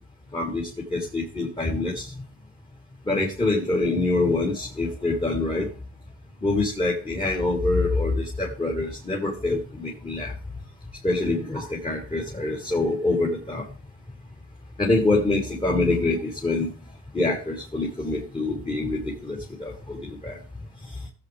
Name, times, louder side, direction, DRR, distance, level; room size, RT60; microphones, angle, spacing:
voice 1, 0.3-2.1 3.1-5.7 6.4-10.3 11.0-13.6 14.8-16.7 17.1-20.4, left 2 dB, 20° left, -3 dB, 3.8 m, -25 dB
19.5 x 7.8 x 3.4 m, 0.37 s
cardioid pair, 90°, 30 cm